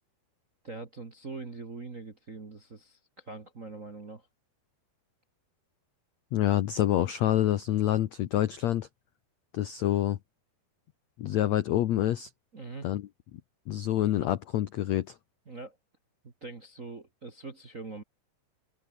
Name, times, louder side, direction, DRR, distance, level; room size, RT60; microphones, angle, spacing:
voice 1, 0.6-4.3 12.5-12.9 15.4-15.8 16.2-18.0, right 3 dB, 40° right, 1.2 m, -43 dB
voice 2, 6.3-8.9 9.5-10.2 11.2-12.3 12.8-13.0 13.7-15.1, left 12 dB, 85° left, 1.5 m, -27 dB
omnidirectional pair, 4.6 m